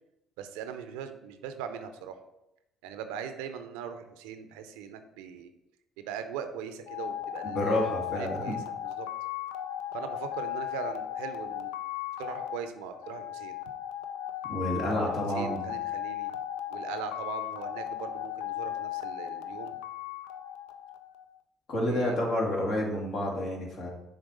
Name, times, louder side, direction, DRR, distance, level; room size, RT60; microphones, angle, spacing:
voice 1, 0.4-2.2 2.8-5.5 6.0-9.1 9.9-11.7 12.2-13.6 15.1-16.3 16.7-19.8 21.8-22.3, right 8 dB, 80° right, 8 dB, 0.5 m, -40 dB
sound 1, 6.9-21.3, left 12 dB, 80° left, 0.4 m, -36 dB
voice 2, 7.5-8.5 14.5-15.7 21.7-23.9, left 1 dB, 60° left, -2 dB, 1.9 m, -29 dB
6.5 x 3.5 x 4.8 m, 0.91 s
hypercardioid pair, 55°, 0 cm